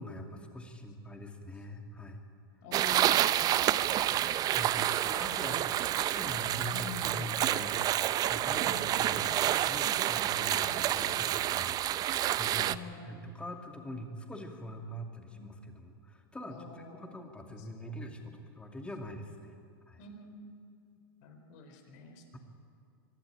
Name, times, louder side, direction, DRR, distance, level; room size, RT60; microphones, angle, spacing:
voice 1, 0.0-2.2 4.5-5.6 6.0-12.7 13.1-19.5 19.9-20.0, equal, 10° left, 3 dB, 2.6 m, -43 dB
voice 2, 2.6-4.4 5.1-6.1 6.7-7.3 8.6-9.6 10.5-11.2 12.5-13.3 15.3-15.5 16.5-17.2 17.6-17.9 20.0-20.6 21.2-22.2, left 4 dB, 55° left, 5 dB, 4.2 m, -48 dB
sound 1, 2.7-12.7, right 12 dB, 30° right, 0.6 m, -29 dB
24.5 x 12.0 x 9.9 m, 2.5 s
hypercardioid pair, 120°, 12 cm